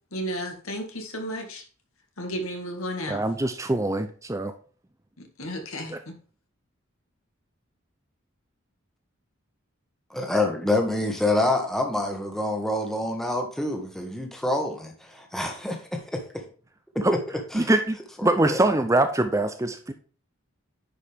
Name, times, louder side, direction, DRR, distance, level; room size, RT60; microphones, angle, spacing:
voice 1, 0.1-1.6 2.2-3.2 5.2-6.1, equal, 80° left, 3 dB, 2.0 m, -33 dB
voice 2, 3.1-4.5 17.0-17.2 17.5-19.9, right 2 dB, 15° right, 9 dB, 0.5 m, -23 dB
voice 3, 10.1-16.0 17.1-17.2 17.5-17.7 18.3-18.6, left 2 dB, ahead, 3 dB, 1.3 m, -27 dB
9.9 x 5.3 x 3.5 m, 0.41 s
head